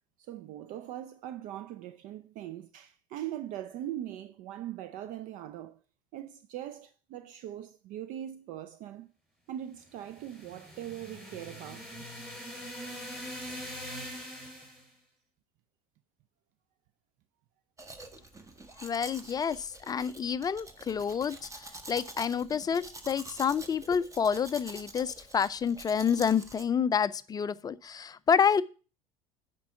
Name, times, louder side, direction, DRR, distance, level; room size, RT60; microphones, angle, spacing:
voice 1, 0.2-5.8 6.1-9.1 9.5-12.0, right 12 dB, 45° right, 0.5 m, -41 dB
sound 1, 10.0-14.9, equal, ahead, 4.3 m, -42 dB
Domestic sounds home sounds, 17.8-26.6, right 2 dB, 15° right, 1.1 m, -47 dB
voice 2, 18.8-21.5 21.9-28.6, left 7 dB, 20° left, 0.4 m, -28 dB
10.0 x 4.5 x 5.6 m
figure-of-eight pair, 70°, 18 cm